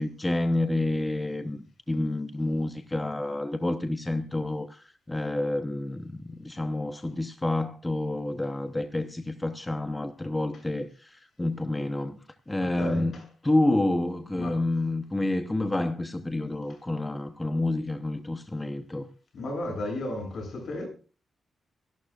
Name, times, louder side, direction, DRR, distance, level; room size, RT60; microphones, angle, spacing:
voice 1, 0.0-12.2 12.5-13.1 13.4-19.1, left 2 dB, 10° left, 0.8 m, -29 dB
voice 2, 12.6-13.2 14.3-14.6 19.3-20.9, left 1 dB, 45° left, 7.5 m, -34 dB
24.5 x 11.5 x 2.4 m
wide cardioid pair, 170°, 0 cm